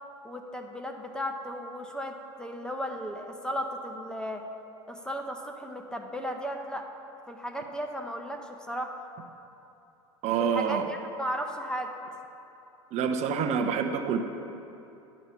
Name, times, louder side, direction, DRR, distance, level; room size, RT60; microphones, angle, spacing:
voice 1, 0.2-4.4 4.9-6.9 7.3-8.9 10.4-11.9, equal, 5° left, 3 dB, 0.7 m, -35 dB
voice 2, 10.2-10.9 12.9-14.2, right 6 dB, 45° right, 5 dB, 0.7 m, -27 dB
10.5 x 5.1 x 5.6 m, 2.9 s
hypercardioid pair, 95°, 15 cm